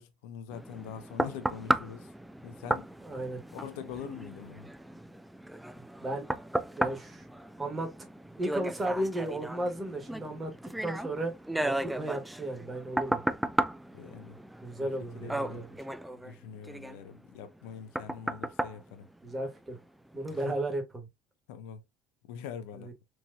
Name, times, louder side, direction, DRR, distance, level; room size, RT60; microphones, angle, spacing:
voice 1, 0.0-2.1 2.4-2.9 3.5-4.7 13.9-14.4 14.8-15.7 16.1-19.1 20.5-20.6 21.5-21.8 22.2-22.9, left 8 dB, 60° left, 0.6 m, -44 dB
sound 1, 0.5-19.8 20.3-20.4, right 1 dB, 5° right, 0.3 m, -35 dB
voice 2, 3.0-3.4 5.8-6.2 6.8-7.3 7.6-7.9 8.4-10.5 10.8-11.3 11.6-13.2 14.6-15.8 19.2-19.8 20.1-21.1 22.8-22.9, right 1 dB, 20° right, 1.4 m, -34 dB
4.6 x 2.7 x 2.5 m
figure-of-eight pair, 65°, 0 cm